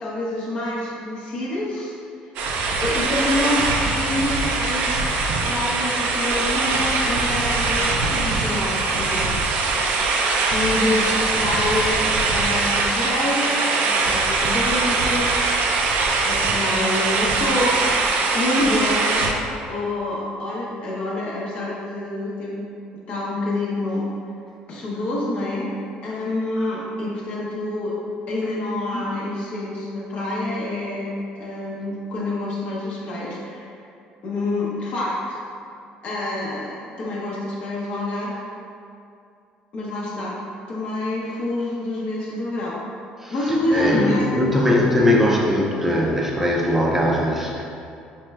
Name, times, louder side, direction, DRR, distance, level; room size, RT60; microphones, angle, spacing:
voice 1, 0.0-1.9 2.8-15.8 16.2-18.0 18.3-19.3 19.7-22.7 23.1-24.1 24.7-25.7 26.0-28.0 28.3-33.7 34.2-35.4 36.0-38.4 39.7-40.4 40.7-42.8 43.3-44.9, left 2 dB, 45° left, -5 dB, 0.7 m, -27 dB
sound 1, 2.4-19.3, right 3 dB, 70° right, 0.4 m, -22 dB
voice 2, 43.2-47.6, left 1 dB, 10° right, -2 dB, 0.4 m, -20 dB
4.4 x 3.1 x 2.2 m, 2.5 s
cardioid pair, 135°, 3 cm